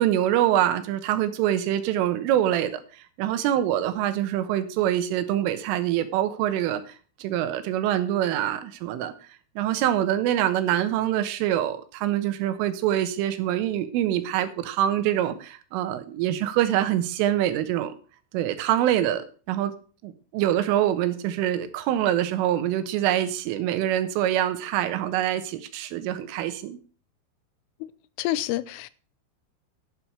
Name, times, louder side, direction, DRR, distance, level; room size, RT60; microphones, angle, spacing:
voice 1, 0.0-6.8 7.2-9.1 9.6-18.0 18.3-19.7 20.0-26.8, right 12 dB, 85° right, 3.7 m, -25 dB
voice 2, 28.2-28.9, left 15 dB, 85° left, 3.2 m, -28 dB
11.5 x 10.5 x 3.3 m
omnidirectional pair, 5.7 m